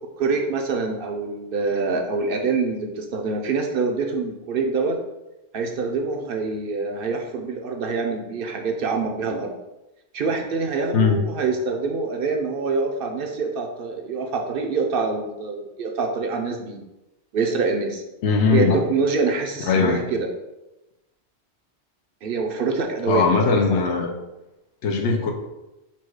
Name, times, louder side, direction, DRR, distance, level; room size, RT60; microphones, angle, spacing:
voice 1, 0.2-5.0 5.5-9.5 10.1-16.8 17.3-18.0 18.5-20.3 22.2-23.3, right 4 dB, 60° right, 2 dB, 0.7 m, -25 dB
voice 2, 18.2-18.8 19.6-20.0 23.0-24.1 24.8-25.3, left 4 dB, 85° left, 2 dB, 1.0 m, -20 dB
4.2 x 2.3 x 4.6 m, 0.97 s
omnidirectional pair, 1.1 m